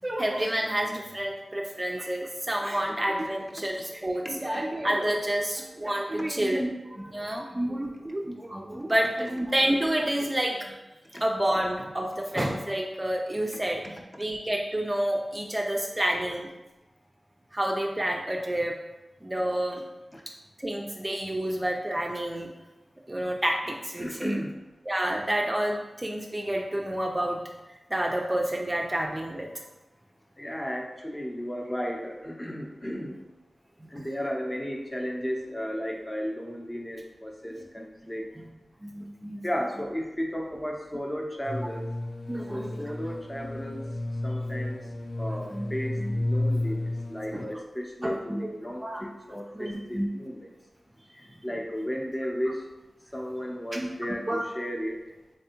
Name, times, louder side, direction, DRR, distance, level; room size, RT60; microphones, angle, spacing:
voice 1, 0.0-10.7 11.2-13.8 14.2-16.5 17.5-18.7 19.2-19.8 20.6-22.5 23.1-24.4 24.9-27.4 27.9-29.5 34.0-34.1 38.8-39.4 42.3-42.8 45.5-45.6 46.0-46.1 47.3-47.4 48.0-48.4 48.8-49.0 49.3-50.1 53.7-53.9 54.3-54.4, right 1 dB, 20° right, 1 dB, 0.4 m, -29 dB
voice 2, 3.7-7.9 8.7-8.9 15.6-16.2 20.1-20.2 23.7-24.6 30.4-33.2 33.9-38.3 39.4-41.9 42.5-43.8 44.2-44.9 45.2-50.5 51.1-52.7 53.1-55.0, equal, 20° left, 0 dB, 0.6 m, -35 dB
sound 1, 41.5-47.4, left 1 dB, 75° left, 0.5 m, -32 dB
3.4 x 3.4 x 2.9 m, 1.0 s
wide cardioid pair, 65°, 0 cm